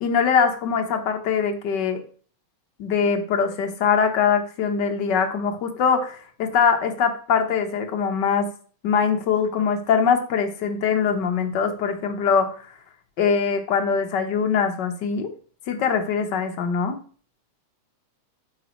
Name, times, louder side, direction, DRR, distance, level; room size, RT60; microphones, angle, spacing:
voice 1, 0.0-2.0 2.8-8.5 8.8-12.7 13.2-15.3 15.7-17.0, left 6 dB, 70° left, 5 dB, 1.0 m, -22 dB
9.3 x 6.8 x 3.1 m, 0.43 s
omnidirectional pair, 3.3 m